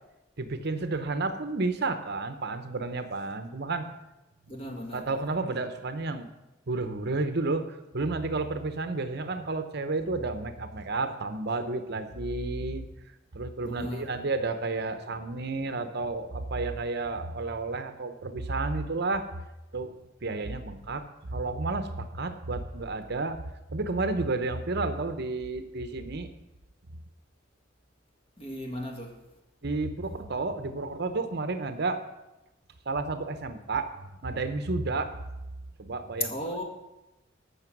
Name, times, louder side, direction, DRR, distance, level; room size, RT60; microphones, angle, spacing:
voice 1, 0.4-3.9 4.8-6.3 6.7-12.8 13.3-19.2 19.7-19.9 20.2-23.4 23.7-26.3 29.6-32.0 32.9-35.1 35.8-36.3, right 3 dB, 55° right, 9 dB, 0.9 m, -31 dB
voice 2, 4.5-5.1 13.6-14.2 28.4-29.2 36.2-36.6, left 1 dB, 30° left, 2 dB, 1.8 m, -35 dB
15.0 x 6.0 x 6.1 m, 0.98 s
head